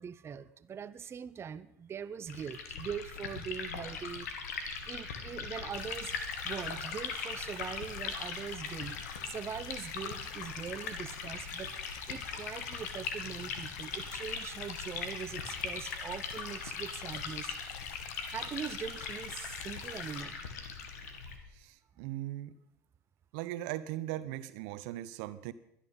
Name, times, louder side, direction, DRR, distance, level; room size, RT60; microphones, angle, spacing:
voice 1, 0.0-4.5 4.9-9.0 9.2-17.6 18.3-20.5, right 7 dB, 30° right, 13 dB, 0.7 m, -42 dB
Liquid, 2.3-21.4, left 5 dB, 80° left, 2.1 m, -40 dB
sound 1, 5.7-20.2, left 13 dB, 55° left, 0.8 m, -50 dB
voice 2, 21.5-22.5 23.3-25.5, right 14 dB, 65° right, 15 dB, 0.9 m, -39 dB
22.5 x 10.0 x 5.5 m, 0.77 s
hypercardioid pair, 70°, 8 cm